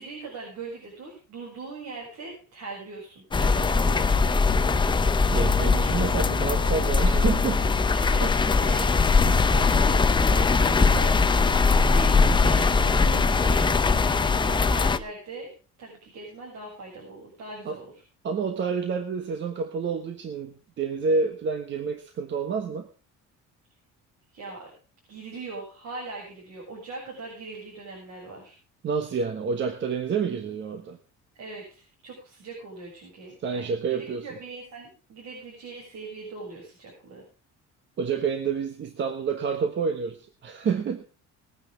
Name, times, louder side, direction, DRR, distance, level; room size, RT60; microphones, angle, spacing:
voice 1, 0.0-4.9 7.9-15.5 15.8-18.0 24.3-24.7 25.1-28.5 31.4-37.3, right 3 dB, 70° right, -2 dB, 7.1 m, -41 dB
sound 1, 3.3-15.0, left 4 dB, 15° left, 0.6 m, -21 dB
voice 2, 5.3-7.7 8.2-8.4 17.6-17.8 18.2-22.9 28.8-31.0 33.4-34.3 38.0-41.0, right 5 dB, 40° right, 8 dB, 1.3 m, -28 dB
21.0 x 9.9 x 3.6 m, 0.37 s
cardioid pair, 155°, 30 cm